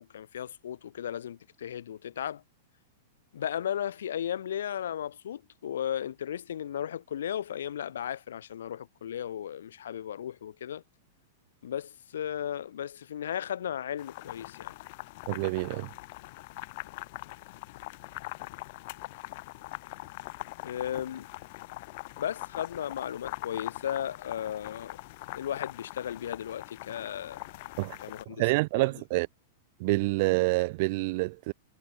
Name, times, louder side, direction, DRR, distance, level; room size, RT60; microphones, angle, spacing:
voice 1, 0.0-2.4 3.3-10.8 11.6-14.7 20.6-21.3 22.2-25.0 25.3-27.4 28.0-28.4 28.7-28.9, left 10 dB, 65° left, 2.4 m, -35 dB
sound 1, 14.0-28.2, left 22 dB, 50° left, 7.6 m, -42 dB
voice 2, 15.3-15.9 27.8-28.0 28.4-29.3 29.8-31.5, right 24 dB, 50° right, 1.3 m, -27 dB
figure-of-eight pair, 100°, 0 cm